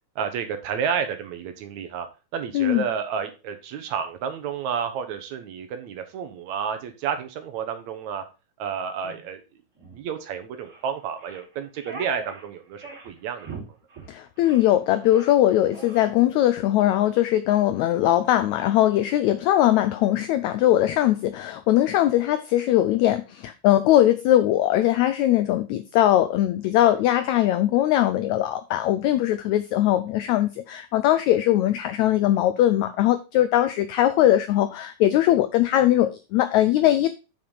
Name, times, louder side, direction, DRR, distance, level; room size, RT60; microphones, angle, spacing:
voice 1, 0.2-8.2 8.6-9.4 9.9-13.5, right 7 dB, 65° right, 8 dB, 2.1 m, -30 dB
sound 1, 9.0-9.2 9.8-10.0 10.6-10.8 11.2-12.5 12.8-13.1 13.4-13.7 13.9-14.1 14.4-14.7 15.0-15.3 15.7-16.0, right 3 dB, 25° right, 3.4 m, -40 dB
voice 2, 14.1-37.1, left 13 dB, 80° left, 11 dB, 1.7 m, -20 dB
6.8 x 5.6 x 5.5 m, 0.30 s
omnidirectional pair, 3.8 m